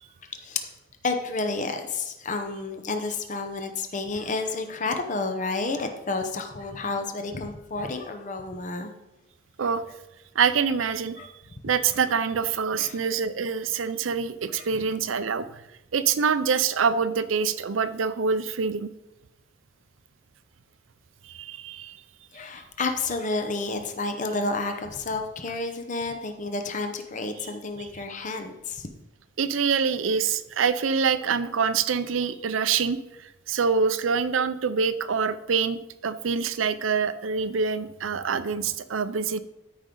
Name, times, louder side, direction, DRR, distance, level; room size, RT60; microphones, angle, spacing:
voice 1, 0.2-0.7 1.0-8.9 9.6-9.7 11.2-11.3 12.8-13.0 14.5-14.9 22.3-28.9, left 3 dB, 40° left, 6 dB, 0.8 m, -30 dB
voice 2, 10.4-11.2 11.6-15.6 15.9-18.9 21.2-22.0 27.8-27.9 29.4-39.4, right 6 dB, 85° right, 13 dB, 0.5 m, -25 dB
13.5 x 5.2 x 3.8 m, 0.95 s
head